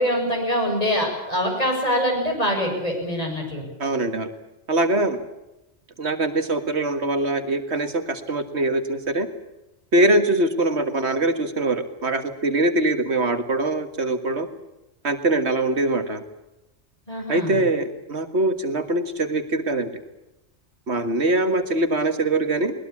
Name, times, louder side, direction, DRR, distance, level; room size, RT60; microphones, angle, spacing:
voice 1, 0.0-3.6 17.1-17.6, equal, 35° left, 1 dB, 7.9 m, -24 dB
voice 2, 3.8-4.3 4.7-5.2 6.0-9.3 9.9-14.5 15.0-16.2 17.3-19.9 20.9-22.7, right 2 dB, 70° right, 8 dB, 2.0 m, -23 dB
21.0 x 20.5 x 8.6 m, 0.92 s
omnidirectional pair, 1.2 m